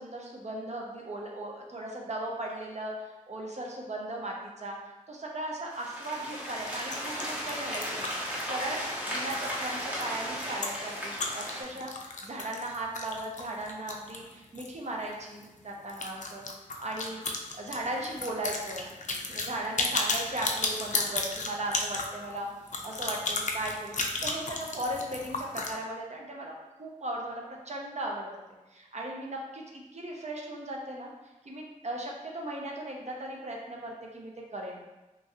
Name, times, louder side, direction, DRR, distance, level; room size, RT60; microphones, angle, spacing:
voice 1, 0.0-4.8 5.1-8.1 8.4-16.4 16.8-17.2 17.5-18.9 19.3-22.5 22.8-26.5 26.8-28.3 28.7-31.1 31.4-34.8, right 1 dB, 50° right, -1 dB, 0.6 m, -37 dB
sound 1, 5.7-11.6, equal, 10° right, 0.9 m, -35 dB
sound 2, 6.6-14.8 15.0-15.1 15.4-15.5 15.9-25.7, left 3 dB, 60° left, 0.4 m, -34 dB
3.0 x 2.4 x 2.6 m, 1.1 s
wide cardioid pair, 50°, 14 cm